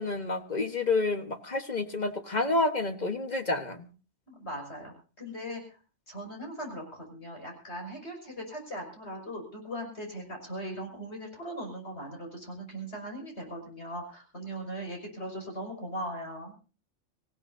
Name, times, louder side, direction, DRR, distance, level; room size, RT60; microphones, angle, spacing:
voice 1, 0.0-3.9, left 3 dB, 35° left, 7 dB, 1.4 m, -29 dB
voice 2, 4.3-5.6 6.1-16.5, equal, 65° left, 1 dB, 6.2 m, -39 dB
25.5 x 16.0 x 2.7 m, 0.35 s
omnidirectional pair, 1.2 m